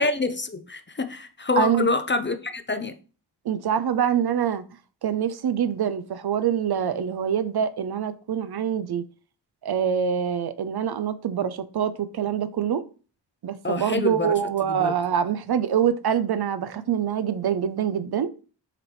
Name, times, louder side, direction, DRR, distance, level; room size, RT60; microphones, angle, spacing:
voice 1, 0.0-2.9 13.6-14.9, left 3 dB, 25° left, 0.5 m, -26 dB
voice 2, 1.6-1.9 3.5-4.6 5.0-9.0 9.6-12.8 13.4-18.3, right 8 dB, 60° right, 0.5 m, -25 dB
4.9 x 3.0 x 3.2 m
cardioid pair, 50°, 43 cm